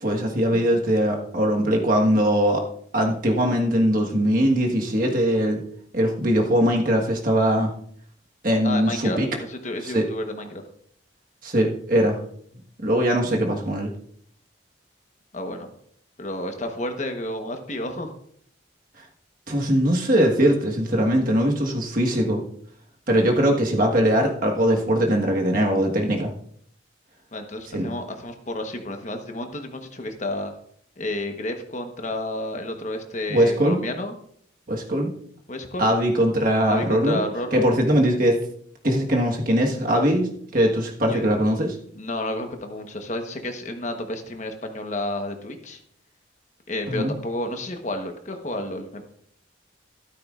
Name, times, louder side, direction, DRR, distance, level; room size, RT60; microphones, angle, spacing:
voice 1, 0.0-2.6 2.9-5.6 5.9-7.7 8.4-9.3 9.9-10.1 11.4-12.2 12.8-13.9 19.5-22.4 23.1-26.3 27.7-27.9 33.3-33.8 34.7-35.1 35.8-37.2 37.5-38.4 38.8-41.7 46.9-47.1, equal, 45° right, 1 dB, 1.4 m, -21 dB
voice 2, 8.6-10.6 15.3-15.7 16.2-18.1 27.3-30.5 31.0-34.1 35.5-35.9 36.6-37.7 41.1-41.2 41.9-45.8 46.7-49.0, left 1 dB, 40° left, 5 dB, 1.1 m, -31 dB
13.0 x 12.0 x 2.5 m, 0.64 s
head